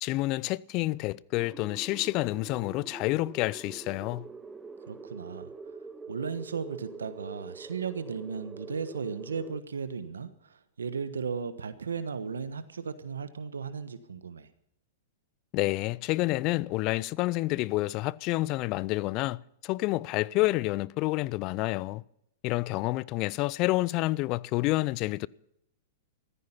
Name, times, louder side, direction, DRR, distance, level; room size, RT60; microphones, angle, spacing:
voice 1, 0.0-4.3 15.5-22.0 22.4-25.3, left 19 dB, 45° left, 0.5 m, -29 dB
sound 1, 1.4-9.6, right 4 dB, 15° right, 0.9 m, -45 dB
voice 2, 4.9-5.5 6.1-14.5, right 6 dB, 90° right, 1.2 m, -36 dB
15.5 x 14.0 x 5.7 m
hypercardioid pair, 115°, 0 cm